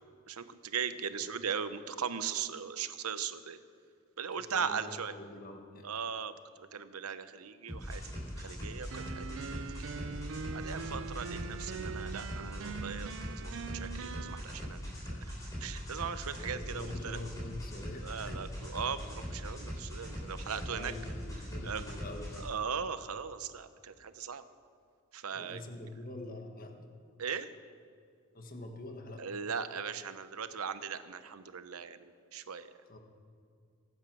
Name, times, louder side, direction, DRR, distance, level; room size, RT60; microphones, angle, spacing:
voice 1, 0.3-3.6 4.2-5.1 5.8-6.3 6.7-8.0 8.4-9.9 10.5-14.8 15.1-15.2 15.6-17.2 18.0-20.9 21.6-21.8 22.4-24.4 25.1-25.6 27.2-27.5 29.2-32.7, right 7 dB, 90° right, 12 dB, 0.8 m, -38 dB
voice 2, 4.5-5.9 16.5-18.5 20.3-22.5 25.3-26.9 28.3-29.4 32.9-33.0, left 1 dB, 40° left, 4 dB, 1.5 m, -45 dB
sound 1, 7.7-22.4, equal, 15° left, 4.5 m, -41 dB
sound 2, 8.9-14.4, right 5 dB, 60° right, 0.4 m, -42 dB
23.0 x 8.2 x 6.1 m, 2.3 s
head